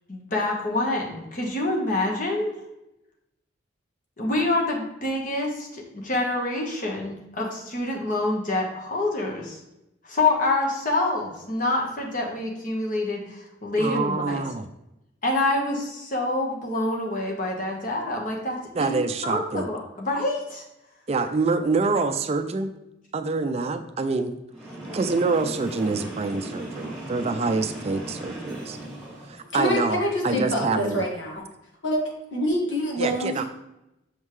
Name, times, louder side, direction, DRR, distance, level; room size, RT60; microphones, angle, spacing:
voice 1, 0.1-2.6 4.2-9.6 10.0-14.4 15.2-20.6, left 2 dB, 45° left, 0 dB, 1.3 m, -26 dB
voice 2, 13.8-14.7 18.7-19.7 21.1-22.7 23.1-24.4 24.9-28.8 29.2-31.0 33.0-33.4, right 3 dB, 35° right, 8 dB, 0.4 m, -26 dB
Train, 24.5-29.5, right 1 dB, 5° left, 1.8 m, -37 dB
voice 3, 29.5-31.4 31.8-32.0 32.3-33.4, equal, 85° left, -1 dB, 1.8 m, -26 dB
6.4 x 5.4 x 3.2 m, 0.89 s
head